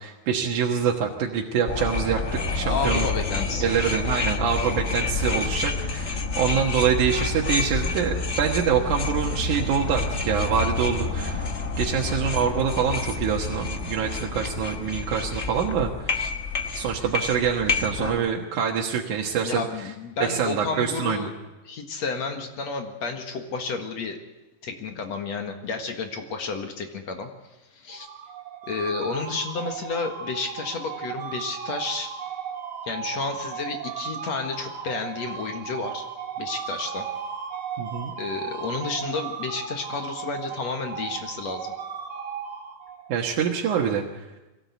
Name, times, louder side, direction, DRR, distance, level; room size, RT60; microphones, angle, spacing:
voice 1, 0.0-2.2 2.5-3.1 3.6-11.5 11.8-16.3 16.8-19.9 20.2-21.3 37.8-38.1 43.1-44.2, right 7 dB, 85° right, 0 dB, 2.9 m, -25 dB
sound 1, 1.7-18.2, left 4 dB, 80° left, 0.6 m, -28 dB
voice 2, 2.7-3.8 19.4-21.3 21.6-24.2 24.6-27.3 27.7-28.1 28.7-32.1 32.9-36.0 36.4-37.1 38.2-41.7, left 4 dB, 65° left, 4 dB, 2.8 m, -31 dB
sound 2, 27.9-43.2, right 7 dB, 55° right, 4.4 m, -35 dB
22.5 x 17.5 x 8.3 m, 1.1 s
omnidirectional pair, 3.4 m